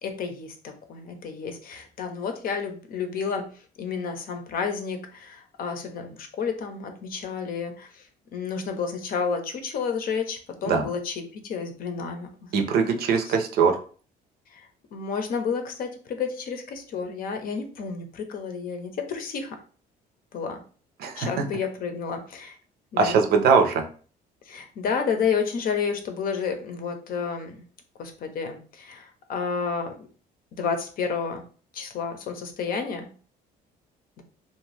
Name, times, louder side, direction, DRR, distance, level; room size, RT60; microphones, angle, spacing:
voice 1, 0.0-3.5 3.8-8.0 8.3-12.5 13.3-13.4 14.5-19.6 20.3-20.6 21.2-22.6 22.9-23.2 24.5-27.6 28.0-30.1 30.5-31.4 31.7-33.1, left 6 dB, 60° left, 6 dB, 0.6 m, -31 dB
voice 2, 12.5-13.8 21.0-21.5 23.0-23.9, right 5 dB, 65° right, 5 dB, 0.6 m, -21 dB
2.6 x 2.2 x 3.2 m, 0.40 s
cardioid pair, 110°, 17 cm